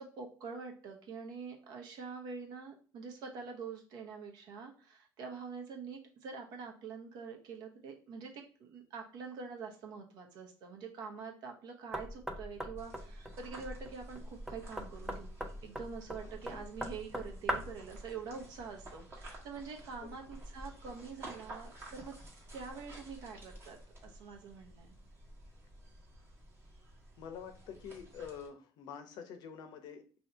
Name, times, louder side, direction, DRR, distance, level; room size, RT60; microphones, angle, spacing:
voice 1, 0.0-15.3 15.6-22.1 22.5-23.8 24.0-24.9, right 5 dB, 60° right, 3 dB, 0.9 m, -45 dB
Knock, 11.9-17.9, equal, 5° right, 0.4 m, -41 dB
sound 1, 12.8-28.5, right 1 dB, 30° right, 1.1 m, -51 dB
voice 2, 16.2-16.6 20.0-20.3 27.2-30.1, left 7 dB, 60° left, 7 dB, 0.6 m, -47 dB
2.8 x 2.7 x 4.4 m, 0.40 s
cardioid pair, 160°, 8 cm